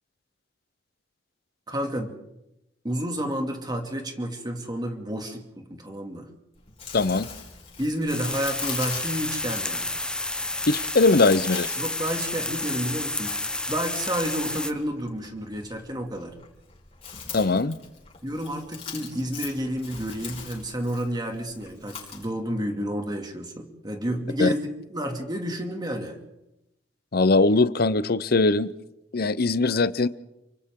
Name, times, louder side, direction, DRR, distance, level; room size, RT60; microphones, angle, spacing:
voice 1, 1.7-2.1 2.8-6.3 7.8-9.9 11.8-13.3 13.7-16.4 18.2-26.2, equal, 25° right, 3 dB, 2.6 m, -30 dB
Chewing mastication, 6.6-22.3, left 6 dB, 35° left, 4.8 m, -42 dB
voice 2, 6.9-7.3 10.7-11.7 17.3-17.7 24.4-24.5 27.1-28.7 29.1-30.1, left 3 dB, 55° left, 15 dB, 0.8 m, -21 dB
sound 1, 8.1-14.7, left 2 dB, 5° left, 0.8 m, -30 dB
29.0 x 24.5 x 3.8 m, 0.90 s
head